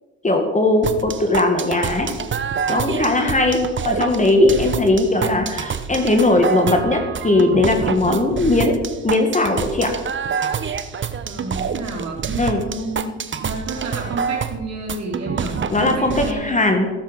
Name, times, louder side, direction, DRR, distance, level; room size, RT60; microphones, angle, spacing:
voice 1, 0.2-2.1 2.7-8.7 9.0-9.9 12.4-12.6 15.7-16.9, left 2 dB, 20° left, 4 dB, 1.9 m, -18 dB
sound 1, 0.8-16.3, right 6 dB, 35° right, 0.9 m, -27 dB
voice 2, 11.2-13.1 13.3-16.5, right 2 dB, 50° right, -1 dB, 4.2 m, -30 dB
15.0 x 7.5 x 5.2 m, 1.2 s
supercardioid pair, 65°, 34 cm